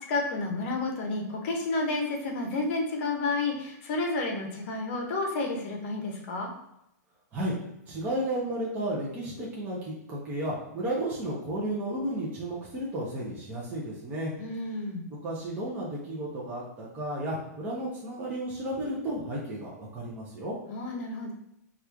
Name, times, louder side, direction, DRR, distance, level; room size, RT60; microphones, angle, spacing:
voice 1, 0.1-6.5 14.4-15.0 20.7-21.3, left 3 dB, 45° left, 2 dB, 0.8 m, -30 dB
voice 2, 7.9-14.3 15.1-20.6, right 1 dB, 15° right, -5 dB, 0.7 m, -33 dB
2.9 x 2.4 x 3.4 m, 0.83 s
hypercardioid pair, 160°, 9 cm